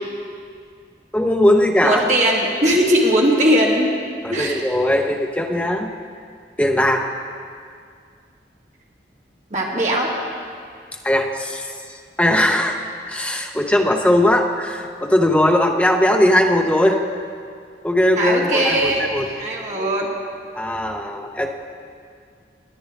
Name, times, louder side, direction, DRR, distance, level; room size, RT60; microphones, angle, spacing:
voice 1, 1.1-2.0 4.2-5.9 6.6-7.1 11.0-11.7 12.2-12.8 13.1-17.0 17.8-19.3 20.5-21.5, left 1 dB, 10° left, 3 dB, 0.6 m, -19 dB
voice 2, 1.8-3.9 4.3-4.6 9.5-10.1 18.2-19.0 19.3-20.1, right 1 dB, 40° right, -2 dB, 1.7 m, -19 dB
20.0 x 9.5 x 3.5 m, 2.2 s
head